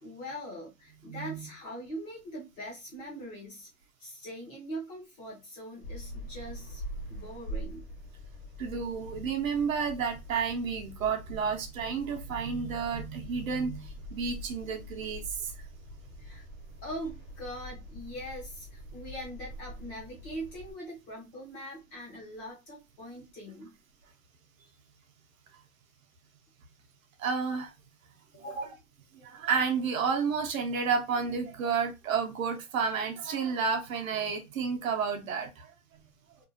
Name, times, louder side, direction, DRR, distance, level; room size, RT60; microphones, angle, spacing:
voice 1, 0.0-3.7 4.0-6.8 7.1-7.8 16.2-16.4 16.8-23.7 28.3-28.7, equal, 20° left, 0.7 m, -42 dB
voice 2, 1.1-1.5 8.6-15.5 27.2-27.7 28.5-28.7 29.1-35.7, right 6 dB, 60° right, 0.8 m, -31 dB
sound 1, 5.8-20.7, equal, 40° left, 1.0 m, -44 dB
2.6 x 2.3 x 2.5 m
hypercardioid pair, 155°, 47 cm